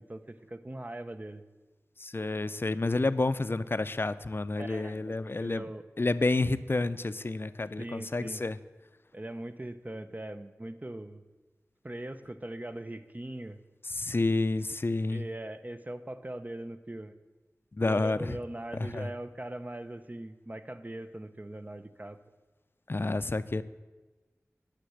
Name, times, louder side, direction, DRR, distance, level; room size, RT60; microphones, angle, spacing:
voice 1, 0.0-1.4 4.6-5.8 7.8-8.4 9.1-11.2 11.8-13.6 15.1-17.1 17.8-22.2, right 1 dB, 30° right, 10 dB, 0.7 m, -41 dB
voice 2, 2.0-5.7 6.0-8.6 13.9-15.2 17.7-18.4 18.9-19.1 22.9-23.6, left 2 dB, 45° left, 14 dB, 0.5 m, -29 dB
9.9 x 6.6 x 7.8 m, 1.2 s
wide cardioid pair, 50°, 5 cm